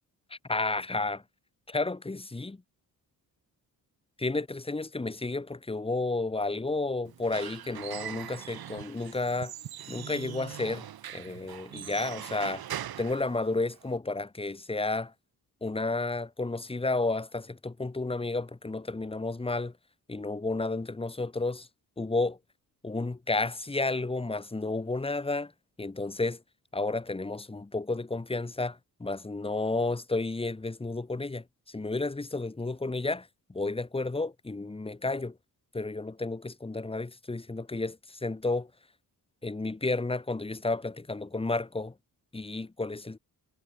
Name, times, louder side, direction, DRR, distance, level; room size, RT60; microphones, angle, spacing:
voice 1, 0.4-1.2 1.7-2.6 4.2-9.5 9.9-10.9 11.1-12.6 13.0-15.1 15.6-19.7 20.1-21.7 22.0-22.4 22.8-25.5 25.8-26.4 26.7-35.3 35.7-38.7 39.4-41.9 42.3-43.2, left 2 dB, 15° left, 4.0 m, -32 dB
Squeak / Wood, 7.1-14.0, right 10 dB, 75° right, 7.8 m, -41 dB
wide cardioid pair, 155°, 37 cm